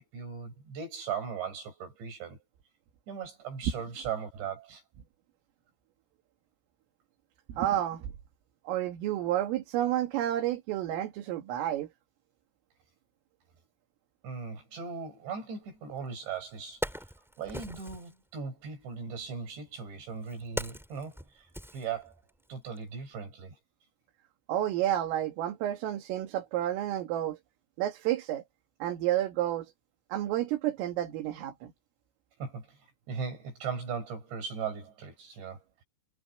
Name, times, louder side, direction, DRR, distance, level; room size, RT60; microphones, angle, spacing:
voice 1, 0.0-2.4 3.1-4.8 14.2-16.9 17.4-21.5 21.7-22.2 22.5-23.6 32.4-32.8 33.1-35.8, right 6 dB, 55° right, 8.7 m, -38 dB
voice 2, 7.5-8.1 8.7-11.9 24.5-27.4 27.8-28.4 28.8-29.7 30.1-31.7, right 12 dB, 75° right, 4.7 m, -30 dB
Wood, 16.0-16.1 16.5-18.1 19.1-22.4 22.8-22.9, equal, ahead, 3.6 m, -40 dB
omnidirectional pair, 6.0 m